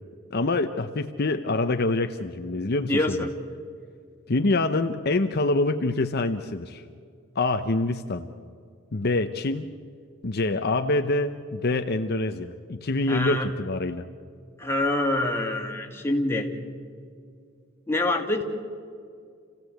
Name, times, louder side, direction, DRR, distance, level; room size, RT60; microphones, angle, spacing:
voice 1, 0.3-3.3 4.3-6.8 7.3-8.3 8.9-9.7 10.2-14.0, left 2 dB, 50° left, 7 dB, 0.8 m, -25 dB
voice 2, 2.9-3.3 13.1-13.5 14.6-16.5 17.9-18.4, left 2 dB, 10° left, 1 dB, 2.3 m, -25 dB
28.5 x 16.5 x 8.0 m, 2.3 s
head